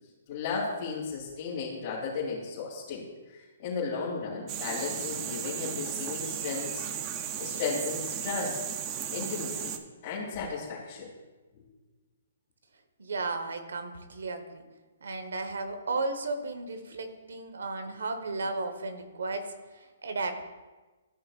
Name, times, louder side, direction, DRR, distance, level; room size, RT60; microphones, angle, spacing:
voice 1, 0.3-3.1 3.3-6.8 7.4-8.6 9.1-9.7 10.0-11.1 11.5-11.6, left 4 dB, 35° left, -8 dB, 2.4 m, -34 dB
sound 1, 4.5-9.8, right 9 dB, 25° right, 0.5 m, -35 dB
voice 2, 13.0-14.6 15.0-20.4, right 3 dB, 85° right, 8 dB, 1.2 m, -34 dB
14.0 x 6.2 x 2.4 m, 1.2 s
hypercardioid pair, 165°, 0 cm